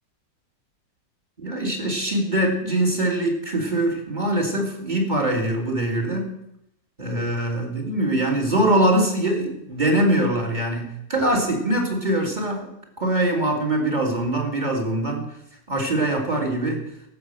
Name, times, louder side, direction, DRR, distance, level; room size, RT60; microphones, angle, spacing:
voice 1, 1.4-6.3 7.0-12.7 13.0-15.3 15.7-16.9, right 1 dB, 25° right, 1 dB, 2.7 m, -23 dB
14.5 x 6.3 x 7.7 m, 0.81 s
omnidirectional pair, 1.9 m